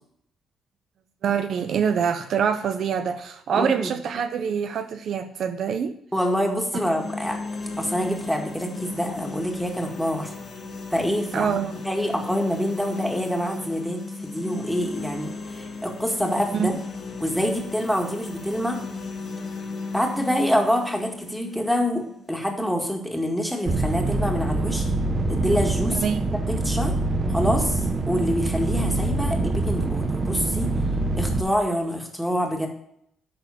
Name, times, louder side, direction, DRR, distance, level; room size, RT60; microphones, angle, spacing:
voice 1, 1.2-5.9 11.3-11.7 16.5-16.7 26.0-26.2, right 7 dB, 65° right, 8 dB, 0.8 m, -25 dB
voice 2, 3.5-3.9 6.1-7.4 7.8-10.3 10.9-11.6 11.8-16.7 17.2-18.8 19.9-24.9 25.3-26.1 26.5-26.9 27.3-30.7 31.2-32.7, equal, ahead, 1 dB, 2.0 m, -26 dB
sound 1, 6.6-22.6, left 3 dB, 55° left, 2.8 m, -35 dB
sound 2, 23.7-31.4, right 2 dB, 30° right, 1.1 m, -25 dB
11.0 x 4.2 x 7.0 m, 0.71 s
cardioid pair, 90°, 0 cm